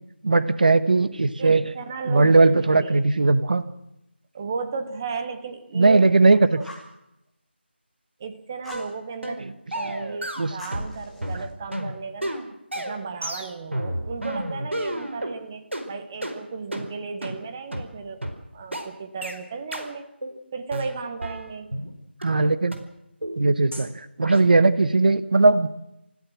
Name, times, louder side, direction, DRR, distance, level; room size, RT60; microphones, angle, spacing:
voice 1, 0.2-1.6 2.1-3.6 5.7-6.6 10.4-10.5 22.2-22.8 23.4-23.9 24.2-25.7, right 3 dB, 45° right, 13 dB, 1.3 m, -18 dB
voice 2, 1.1-3.0 4.3-6.1 6.5-6.7 8.2-9.5 9.7-12.4 12.7-18.2 18.5-20.1 20.5-21.7, right 5 dB, 20° right, 9 dB, 1.1 m, -34 dB
Fire, 6.6-7.0 8.6-8.9 10.6-11.5, left 1 dB, ahead, 1.2 m, -44 dB
sound 1, 8.7-8.9 9.2-9.4 9.7-10.9 11.2-15.4 15.7-15.9 16.2-16.4 16.7-16.9 17.2-17.4 17.7-17.9 18.2-18.4 18.7-18.9 19.2-19.4 19.7-19.9 20.2-20.4 20.7-21.9 22.2-22.3 22.7-22.8 23.2-23.4 23.7-23.9 24.2-24.4, right 1 dB, 85° right, 4.6 m, -31 dB
28.0 x 16.0 x 6.2 m, 0.86 s
figure-of-eight pair, 165°, 6 cm